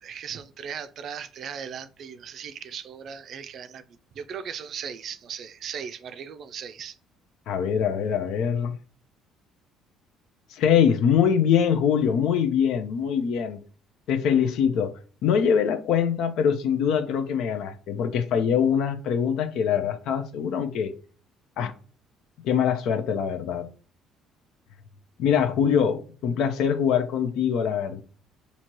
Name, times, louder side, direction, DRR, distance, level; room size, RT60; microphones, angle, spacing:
voice 1, 0.0-3.8 4.1-7.0, right 7 dB, 50° right, 0.4 m, -37 dB
voice 2, 7.5-8.7 10.5-13.6 14.1-14.9 15.2-20.9 21.6-21.7 22.4-23.7 25.2-28.0, left 8 dB, 70° left, 0.6 m, -23 dB
5.9 x 2.8 x 3.0 m
cardioid pair, 140°, 0 cm